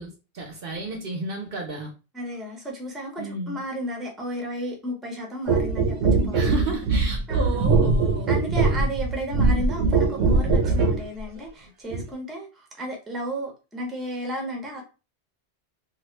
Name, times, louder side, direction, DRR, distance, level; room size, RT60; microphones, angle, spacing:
voice 1, 0.0-1.9 3.2-3.6 6.3-8.9, right 3 dB, 60° right, 0.7 m, -33 dB
voice 2, 2.1-6.8 7.3-7.8 8.3-14.8, equal, ahead, 0.6 m, -33 dB
sound 1, 5.5-11.1 11.9-12.1, right 3 dB, 80° right, 0.9 m, -21 dB
2.9 x 2.3 x 3.1 m
omnidirectional pair, 1.2 m